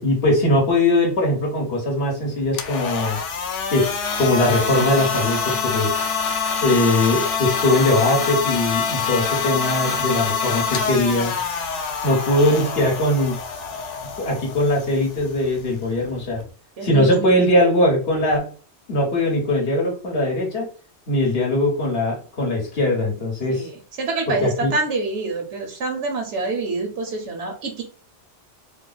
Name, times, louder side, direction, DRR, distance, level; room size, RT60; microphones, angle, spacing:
voice 1, 0.0-3.2 3.7-6.0 6.6-11.3 12.0-13.4 14.1-16.4 16.8-18.5 18.9-20.6 21.1-23.7 24.3-24.7, left 1 dB, 60° left, -1 dB, 1.4 m, -20 dB
sound 1, 2.4-16.5, left 5 dB, 85° left, 0.9 m, -26 dB
voice 2, 16.8-17.3 23.5-27.8, right 3 dB, 85° right, 3 dB, 1.0 m, -27 dB
3.1 x 2.1 x 3.9 m, 0.39 s
omnidirectional pair, 1.2 m